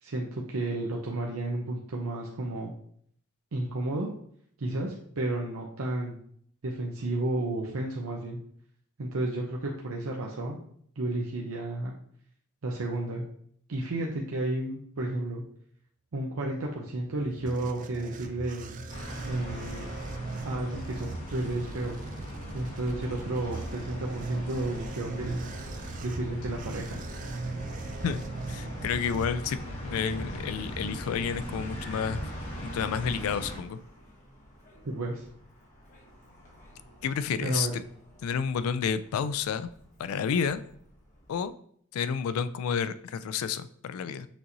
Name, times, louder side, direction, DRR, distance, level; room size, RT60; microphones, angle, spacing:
voice 1, 0.0-2.7 3.5-4.1 4.6-6.2 6.6-8.4 9.0-10.6 11.0-11.9 12.6-13.2 13.7-15.4 16.1-18.8 19.3-19.9 20.4-22.0 22.5-25.4 26.0-27.0 34.8-35.2 37.4-37.7, right 2 dB, 80° right, -1 dB, 0.6 m, -32 dB
sound 1, 17.0-29.8, right 3 dB, 40° right, 0.4 m, -40 dB
sound 2, 18.9-33.6, equal, 65° left, 1.8 m, -39 dB
Car, 24.7-41.5, left 1 dB, 35° left, 1.1 m, -53 dB
voice 2, 28.5-32.3 32.6-33.8 37.0-37.7 38.2-39.7 40.0-40.6 41.3-41.5 41.9-44.3, left 7 dB, 85° left, 14 dB, 0.3 m, -30 dB
6.0 x 2.9 x 2.7 m, 0.62 s
head